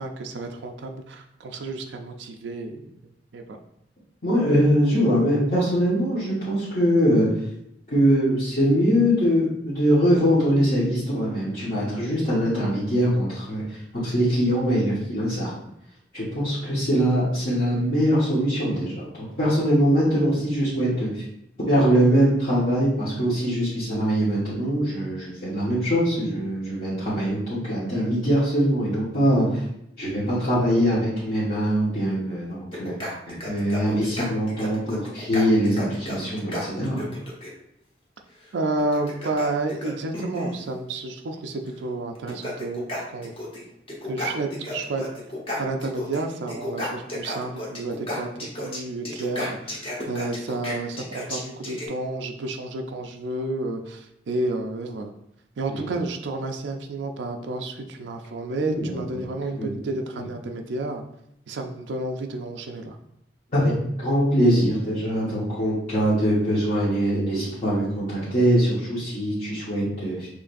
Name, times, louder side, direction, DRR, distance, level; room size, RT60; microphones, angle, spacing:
voice 1, 0.0-2.8 3.3-3.6 38.5-43.3 44.0-45.1 45.6-55.1 55.6-61.0 61.5-63.0, right 2 dB, 85° right, 3 dB, 0.4 m, -30 dB
voice 2, 4.2-7.3 7.9-15.5 16.1-19.1 19.4-21.2 21.7-29.6 30.0-32.9 33.3-37.0 55.7-55.9 58.6-59.0 59.6-59.7 63.5-63.7 64.0-70.3, equal, 50° left, -10 dB, 1.3 m, -22 dB
sound 1, 32.7-37.5 38.8-40.6 41.7-41.8 42.1-43.6 43.9-46.2 46.5-51.9, left 1 dB, 35° left, 1.1 m, -33 dB
6.2 x 3.2 x 2.6 m, 0.77 s
head